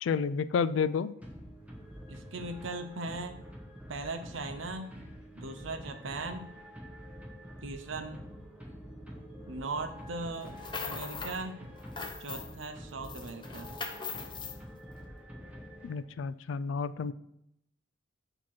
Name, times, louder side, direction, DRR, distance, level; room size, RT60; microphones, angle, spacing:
voice 1, 0.0-1.1 15.8-17.1, left 6 dB, 70° left, 15 dB, 0.3 m, -30 dB
sound 1, 1.2-16.3, equal, 5° right, 1.0 m, -47 dB
voice 2, 2.1-3.4 3.9-4.9 5.3-6.5 7.6-8.2 9.5-11.6 12.2-13.7, right 3 dB, 75° right, 7 dB, 0.7 m, -39 dB
sound 2, 10.4-11.4 11.7-12.7 13.0-14.6, left 4 dB, 25° left, 0.6 m, -40 dB
7.2 x 2.9 x 6.0 m, 0.78 s
head